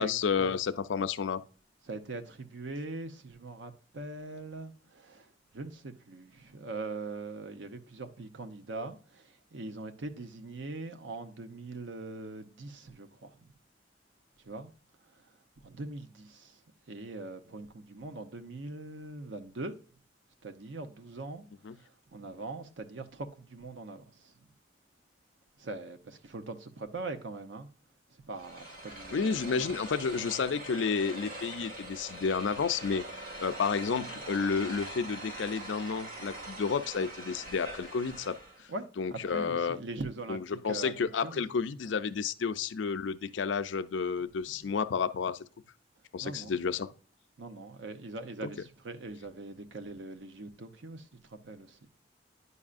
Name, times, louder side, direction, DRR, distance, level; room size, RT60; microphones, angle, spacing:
voice 1, 0.0-1.4 21.6-21.7 29.1-33.0 33.4-38.4 39.0-39.8 40.3-45.4 46.1-46.9, left 5 dB, 90° left, 0.5 m, -31 dB
voice 2, 1.8-13.5 14.4-14.7 15.0-16.6 16.9-19.7 20.4-24.5 25.6-27.7 28.1-29.7 34.0-34.2 38.7-41.4 41.9-42.0 46.2-46.6 47.4-51.8, right 2 dB, 85° right, 0.7 m, -42 dB
sound 1, 28.4-38.7, right 1 dB, 50° right, 1.8 m, -43 dB
9.7 x 5.4 x 2.5 m
head